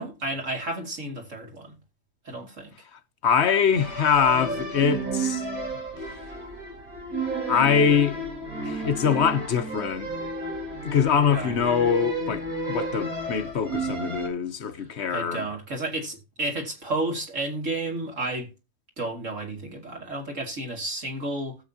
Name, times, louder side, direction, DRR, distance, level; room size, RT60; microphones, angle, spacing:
voice 1, 0.0-1.8 2.2-2.7 11.3-11.6 15.1-18.5 19.0-21.6, right 2 dB, 55° right, 2.8 m, -31 dB
voice 2, 2.9-5.5 7.5-8.2 8.6-10.1 10.8-15.5, left 7 dB, 50° left, 1.2 m, -23 dB
sound 1, 3.7-14.3, right 2 dB, 70° right, 4.2 m, -32 dB
19.0 x 7.1 x 2.8 m
omnidirectional pair, 1.6 m